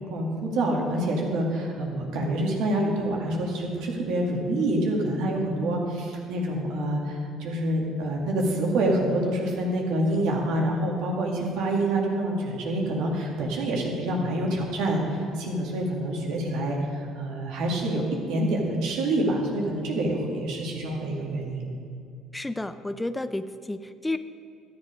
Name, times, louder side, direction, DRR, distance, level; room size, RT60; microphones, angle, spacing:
voice 1, 0.1-21.7, right 1 dB, 75° right, -1 dB, 2.0 m, -27 dB
voice 2, 22.3-24.2, left 2 dB, 10° left, 11 dB, 0.4 m, -31 dB
12.5 x 7.5 x 5.1 m, 2.4 s
supercardioid pair, 75°, 0 cm